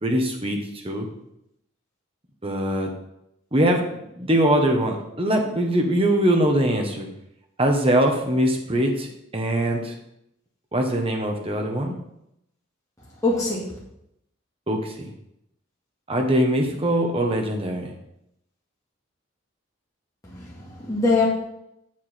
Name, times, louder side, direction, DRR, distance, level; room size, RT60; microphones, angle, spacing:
voice 1, 0.0-1.1 2.4-2.9 3.5-7.1 7.6-9.9 10.7-12.0 14.7-15.1 16.1-17.9, right 1 dB, 30° right, 2 dB, 1.3 m, -22 dB
voice 2, 13.2-13.7 20.3-21.3, left 3 dB, 15° left, -7 dB, 2.0 m, -23 dB
7.6 x 7.2 x 4.3 m, 0.80 s
head